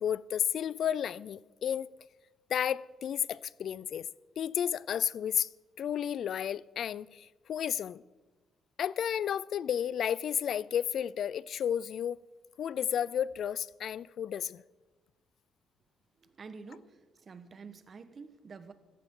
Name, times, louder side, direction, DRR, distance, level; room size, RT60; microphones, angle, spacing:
voice 1, 0.0-1.9 2.5-4.1 4.4-5.5 5.8-8.0 8.8-12.2 12.6-14.6, left 9 dB, 65° left, 0.4 m, -32 dB
voice 2, 16.2-18.7, right 4 dB, 45° right, 1.2 m, -48 dB
16.5 x 13.5 x 3.8 m
cardioid pair, 90°, 0 cm